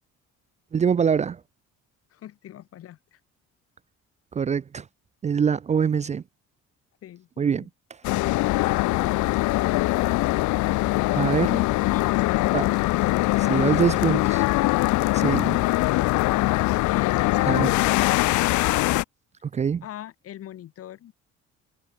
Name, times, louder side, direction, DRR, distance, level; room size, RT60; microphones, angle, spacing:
voice 1, 0.7-1.4 4.3-4.9 5.2-6.2 7.4-7.6 11.1-11.6 12.5-12.7 13.4-14.4 15.1-15.6 17.5-17.7 19.4-19.8, right 7 dB, 25° right, 0.7 m, -24 dB
voice 2, 2.1-3.2 7.0-7.7 10.7-11.5 11.9-12.8 13.2-13.9 16.9-17.8 19.8-21.1, left 12 dB, 50° left, 6.1 m, -41 dB
train station france(bordeaux), 8.0-19.0, left 20 dB, 90° left, 1.1 m, -22 dB
cardioid pair, 165°, 29 cm